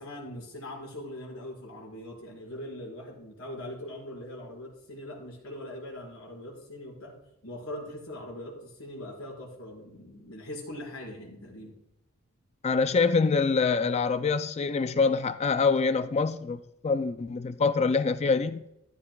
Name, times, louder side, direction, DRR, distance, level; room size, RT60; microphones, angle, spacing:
voice 1, 0.0-11.7, left 1 dB, 75° left, 4.8 m, -41 dB
voice 2, 12.6-18.6, left 4 dB, 30° left, 0.4 m, -25 dB
14.5 x 11.5 x 2.3 m
head